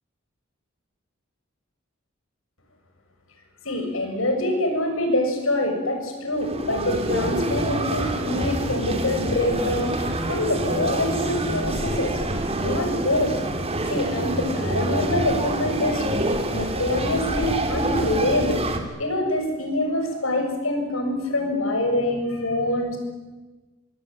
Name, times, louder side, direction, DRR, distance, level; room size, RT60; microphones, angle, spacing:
voice 1, 3.6-12.1 12.6-13.3 13.9-18.6 19.0-23.0, left 1 dB, 80° left, 4 dB, 7.2 m, -25 dB
sound 1, 6.4-18.8, right 1 dB, 30° right, 3.3 m, -26 dB
27.5 x 21.5 x 9.3 m, 1.2 s
head